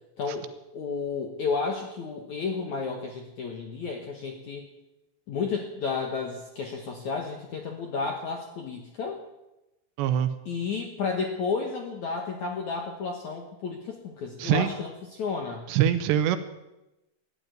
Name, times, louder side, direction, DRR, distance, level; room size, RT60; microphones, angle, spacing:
voice 1, 0.2-0.5 0.7-4.7 5.3-9.2 10.5-15.7, left 5 dB, 65° left, 2 dB, 1.9 m, -32 dB
voice 2, 10.0-10.3 14.4-14.7 15.7-16.4, right 10 dB, 80° right, 11 dB, 2.9 m, -23 dB
14.5 x 10.5 x 9.3 m, 0.96 s
omnidirectional pair, 5.3 m